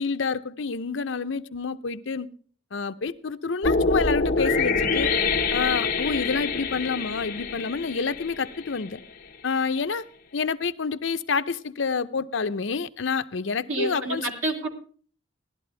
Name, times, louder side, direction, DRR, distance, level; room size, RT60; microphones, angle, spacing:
voice 1, 0.0-2.3 2.7-5.1 5.5-9.0 9.4-10.0 10.3-14.3, left 5 dB, 65° left, 0.7 m, -28 dB
sound 1, 3.6-8.8, left 4 dB, 45° left, 1.2 m, -25 dB
voice 2, 13.7-14.7, right 2 dB, 80° right, 3.4 m, -28 dB
17.0 x 12.0 x 3.3 m
head